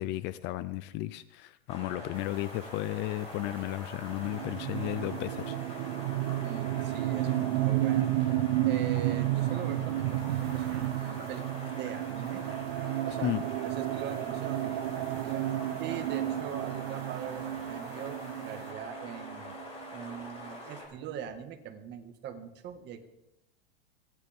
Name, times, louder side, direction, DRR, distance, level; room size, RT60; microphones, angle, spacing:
voice 1, 0.0-5.6 13.2-13.4, left 16 dB, 35° left, 16 dB, 0.5 m, -34 dB
sound 1, 1.7-20.8, left 1 dB, 20° left, 5.4 m, -45 dB
sound 2, 2.1-18.7, right 10 dB, 90° right, 1.3 m, -49 dB
sound 3, 4.2-19.8, right 14 dB, 55° right, 0.7 m, -32 dB
voice 2, 6.4-8.1 8.6-12.4 13.0-15.5 15.8-19.5 19.9-23.1, right 9 dB, 35° right, 6 dB, 1.8 m, -42 dB
28.0 x 10.5 x 3.6 m, 0.90 s
supercardioid pair, 135°, 31 cm